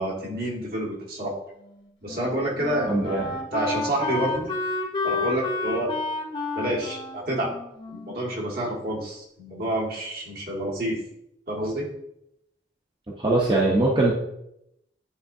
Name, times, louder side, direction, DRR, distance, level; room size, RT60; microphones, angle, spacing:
voice 1, 0.0-1.4 2.0-4.5 5.0-5.9 6.5-7.5 7.9-11.0 11.5-11.9, right 1 dB, 55° right, -3 dB, 1.7 m, -28 dB
Wind instrument woodwind instrument, 1.6-8.9, left 3 dB, 30° left, 0.9 m, -31 dB
voice 2, 2.9-3.3 13.2-14.1, right 2 dB, 25° right, -4 dB, 0.9 m, -21 dB
9.8 x 3.8 x 2.7 m, 0.79 s
head